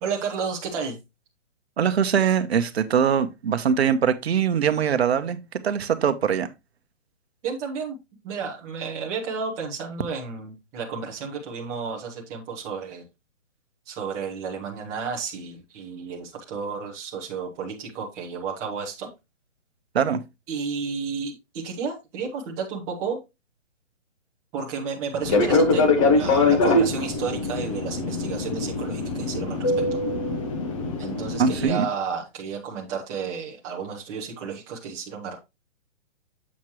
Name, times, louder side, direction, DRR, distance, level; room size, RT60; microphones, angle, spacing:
voice 1, 0.0-1.0 7.4-8.0 8.2-13.0 13.9-19.1 20.5-23.2 24.5-30.0 31.0-35.4, right 5 dB, 10° right, 0.7 m, -32 dB
voice 2, 1.8-5.4 5.6-6.5 19.9-20.2 31.4-31.9, right 7 dB, 60° right, 0.9 m, -22 dB
Fixed-wing aircraft airplane, 25.2-31.7, left 2 dB, 30° left, 0.8 m, -23 dB
7.3 x 6.1 x 3.0 m
hypercardioid pair, 160°, 36 cm